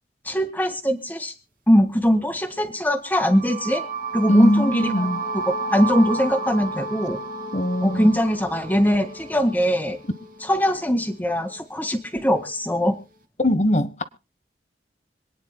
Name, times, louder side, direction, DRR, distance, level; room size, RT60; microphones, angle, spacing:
voice 1, 0.3-1.3 1.7-3.8 4.1-5.2 5.5-7.2 7.8-10.0 10.4-13.0, equal, 10° left, 1.8 m, -21 dB
sound 1, 3.1-11.0, right 3 dB, 50° right, 2.2 m, -32 dB
voice 2, 4.3-5.2 7.5-8.1 13.4-14.0, left 1 dB, 40° left, 1.2 m, -21 dB
26.0 x 9.9 x 2.2 m
head